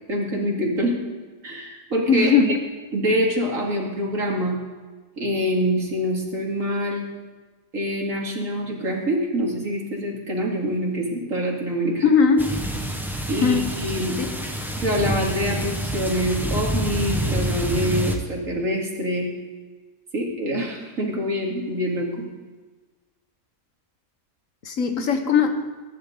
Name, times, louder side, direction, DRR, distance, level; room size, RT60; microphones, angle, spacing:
voice 1, 0.1-1.0 1.4-2.6 2.9-4.6 5.2-7.0 7.7-12.0 13.3-14.2 14.8-19.3 20.1-22.3, equal, 65° right, -2 dB, 3.1 m, -25 dB
voice 2, 2.1-2.5 12.0-12.5 13.4-13.7 24.6-25.7, left 5 dB, 65° left, 6 dB, 1.7 m, -19 dB
sound 1, 12.4-18.2, equal, ahead, 1.2 m, -27 dB
22.0 x 11.0 x 4.0 m, 1.4 s
omnidirectional pair, 1.5 m